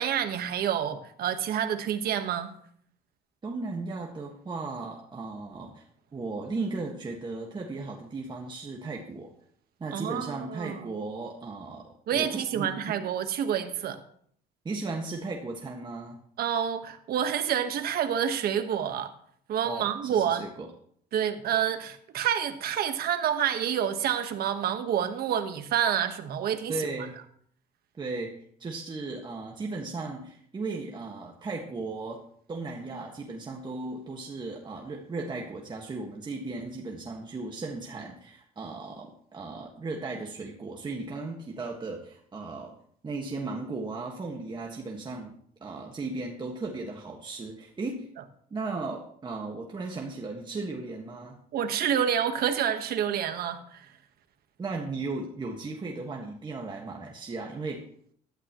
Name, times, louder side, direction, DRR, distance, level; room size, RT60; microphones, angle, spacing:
voice 1, 0.0-2.5 9.9-10.9 12.1-14.0 16.4-19.1 19.5-20.4 21.1-26.7 51.5-53.9, right 9 dB, 65° right, 1.4 m, -28 dB
voice 2, 3.4-5.8 6.1-9.3 9.8-13.0 14.6-16.2 19.6-20.7 26.7-27.2 27.9-32.2 32.5-42.8 43.0-45.3 45.6-48.1 48.5-51.4 54.6-57.8, right 3 dB, 25° right, 1.7 m, -36 dB
16.0 x 12.0 x 3.1 m
cardioid pair, 110°, 17 cm